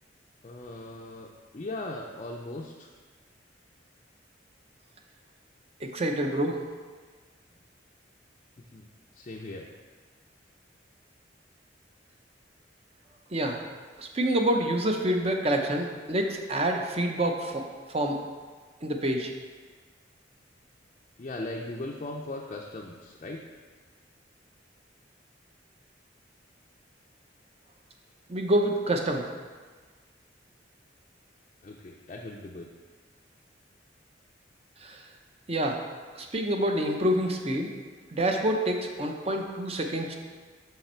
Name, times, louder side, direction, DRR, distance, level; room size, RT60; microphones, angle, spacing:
voice 1, 0.4-1.3 1.5-2.9 8.7-8.9 9.1-9.7 21.2-23.4 31.6-32.7, left 2 dB, 35° left, -1 dB, 0.4 m, -38 dB
voice 2, 5.8-6.6 13.3-13.6 14.0-17.6 17.9-18.2 18.8-19.3 28.3-29.2 34.8-35.0 35.5-35.8 36.1-37.7 38.1-40.2, right 1 dB, 30° right, 3 dB, 0.6 m, -27 dB
6.0 x 5.7 x 4.3 m, 1.5 s
head